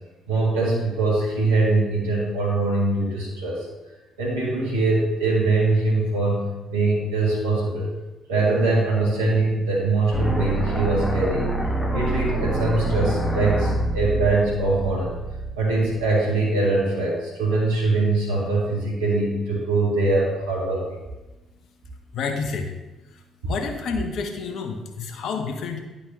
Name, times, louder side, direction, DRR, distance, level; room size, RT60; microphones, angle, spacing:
voice 1, 0.3-3.7 4.2-6.4 6.7-7.9 8.3-11.5 11.9-15.1 15.6-20.9, right 2 dB, 75° right, -5 dB, 1.9 m, -22 dB
sound 1, 10.1-16.1, right 2 dB, 5° left, 1.1 m, -26 dB
voice 2, 22.1-22.7 23.5-25.8, left 5 dB, 55° left, 5 dB, 0.9 m, -29 dB
10.5 x 5.6 x 2.8 m, 1.1 s
figure-of-eight pair, 45°, 0 cm